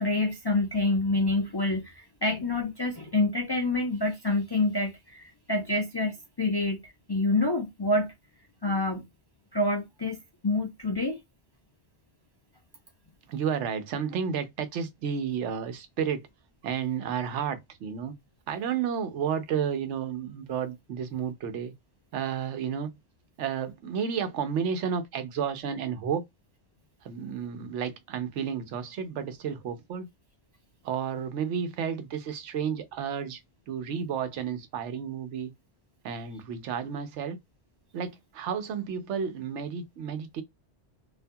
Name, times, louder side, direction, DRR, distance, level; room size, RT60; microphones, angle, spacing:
voice 1, 0.0-1.9 2.2-6.8 7.1-8.1 8.6-9.0 9.5-10.2 10.4-11.2, left 2 dB, 35° left, 0.4 m, -27 dB
voice 2, 13.3-16.2 16.6-18.1 18.5-21.7 22.1-22.9 23.4-26.2 27.0-30.1 30.8-33.4 33.7-35.5 36.0-37.4 37.9-40.4, right 7 dB, 90° right, 0.9 m, -31 dB
2.5 x 2.2 x 2.6 m
omnidirectional pair, 1.2 m